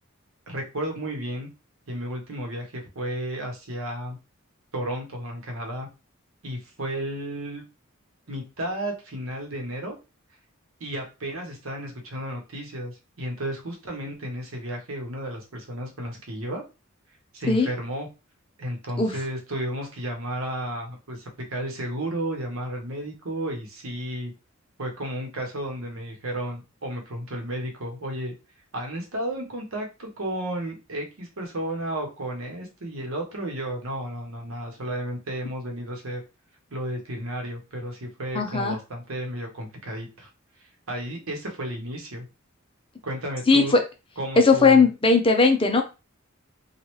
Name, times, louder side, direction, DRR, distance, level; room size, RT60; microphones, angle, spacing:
voice 1, 0.5-1.5 1.9-4.2 4.7-5.9 6.4-7.6 8.3-10.0 10.8-16.6 17.3-18.1 18.6-24.3 24.8-28.3 28.7-36.2 36.7-40.3 40.9-42.2 43.0-43.7 44.2-44.9, right 1 dB, 85° right, 2 dB, 1.0 m, -33 dB
voice 2, 38.3-38.8 43.5-43.8 44.4-45.8, left 4 dB, 25° left, 4 dB, 0.6 m, -18 dB
3.1 x 2.4 x 3.0 m, 0.28 s
head